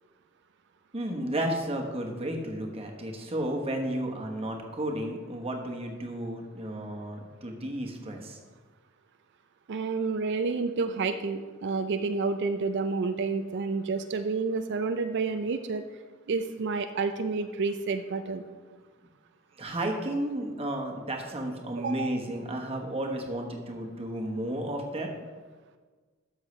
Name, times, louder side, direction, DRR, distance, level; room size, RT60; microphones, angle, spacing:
voice 1, 0.9-8.4 19.5-25.1, right 1 dB, 30° right, 1 dB, 1.1 m, -33 dB
voice 2, 9.7-15.8 16.3-18.4 21.8-22.1, right 4 dB, 55° right, 8 dB, 0.4 m, -29 dB
12.5 x 6.5 x 3.2 m, 1.4 s
head